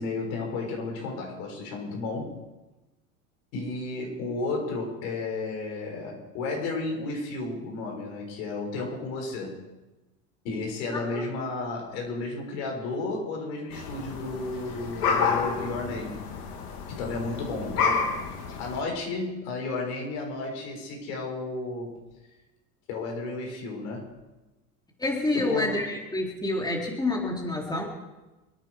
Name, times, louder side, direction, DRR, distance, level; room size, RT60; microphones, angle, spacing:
voice 1, 0.0-2.4 3.5-9.6 10.4-16.2 16.9-18.1 18.6-22.0 22.9-24.1 25.3-25.8, left 3 dB, 70° left, 0 dB, 6.6 m, -33 dB
sound 1, 13.7-18.8, left 5 dB, 85° left, 2.9 m, -29 dB
voice 2, 25.0-27.8, left 2 dB, 10° left, -1 dB, 4.0 m, -28 dB
28.0 x 9.6 x 5.0 m, 1.1 s
hypercardioid pair, 90°, 45 cm